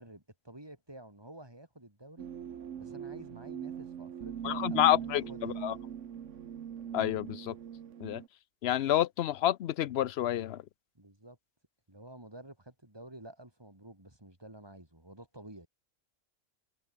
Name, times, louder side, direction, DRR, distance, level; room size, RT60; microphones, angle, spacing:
voice 1, 0.0-2.3 2.8-5.6 11.0-11.4 11.9-15.7, right 1 dB, 20° right, 3.7 m, -50 dB
sound 1, 2.2-8.3, right 8 dB, 65° right, 1.3 m, -41 dB
voice 2, 4.4-5.7 6.9-7.5 8.0-8.2 8.6-10.6, left 12 dB, 60° left, 0.8 m, -29 dB
omnidirectional pair, 1.4 m